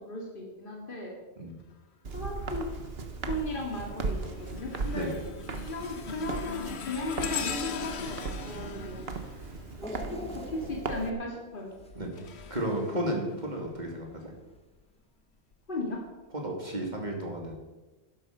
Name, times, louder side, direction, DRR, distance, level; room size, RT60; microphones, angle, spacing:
voice 1, 0.1-1.1 2.1-2.6 3.3-4.2 4.5-5.1 5.7-9.0 9.8-11.7 15.7-16.0, left 2 dB, 50° left, -1 dB, 2.5 m, -36 dB
Walk footsteps, 2.0-11.1, right 4 dB, 65° right, 1.4 m, -37 dB
sound 1, 2.6-3.0 3.5-10.3 11.6-13.8 14.4-14.6 15.5-15.6, left 5 dB, 80° left, 1.3 m, -40 dB
voice 2, 8.5-9.0 11.9-12.1 12.5-14.3 16.3-17.6, right 1 dB, 40° right, 1 dB, 3.0 m, -33 dB
sound 2, 9.8-13.0 13.4-13.5 14.6-14.7, left 1 dB, 5° left, 1.0 m, -46 dB
12.0 x 11.0 x 6.8 m, 1.2 s
omnidirectional pair, 1.1 m